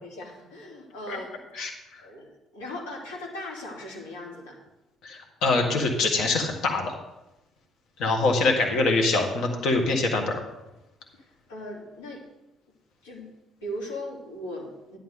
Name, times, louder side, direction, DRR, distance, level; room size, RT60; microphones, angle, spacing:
voice 1, 0.0-1.3 2.0-4.6 11.2-12.2 13.0-13.3 13.6-15.0, left 1 dB, 80° left, -2 dB, 2.3 m, -38 dB
voice 2, 1.5-2.0 5.0-6.9 8.0-10.4, left 3 dB, 65° left, 3 dB, 1.8 m, -24 dB
11.0 x 9.9 x 3.7 m, 0.96 s
figure-of-eight pair, 45°, 0 cm